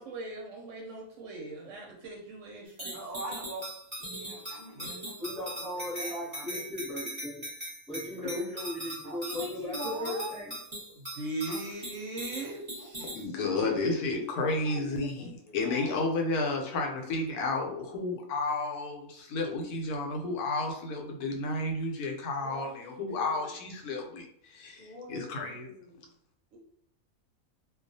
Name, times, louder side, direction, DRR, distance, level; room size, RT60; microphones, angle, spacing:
voice 1, 0.0-3.0 4.7-4.9 11.0-13.1 13.5-13.9 26.5-26.6, right 2 dB, 70° right, -1 dB, 0.8 m, -40 dB
sound 1, 2.8-13.2, equal, 25° right, 0.9 m, -40 dB
voice 2, 2.9-3.7 4.1-6.6 8.2-8.4 9.0-10.3 11.5-11.6 12.8-13.8 14.5-16.2 22.4-23.5 24.8-26.1, equal, 50° left, -7 dB, 0.6 m, -43 dB
voice 3, 5.2-7.5 7.9-10.6, left 1 dB, 5° left, -6 dB, 0.8 m, -37 dB
voice 4, 13.1-25.7, left 3 dB, 90° left, 1 dB, 1.1 m, -32 dB
2.3 x 2.3 x 2.6 m, 0.68 s
omnidirectional pair, 1.5 m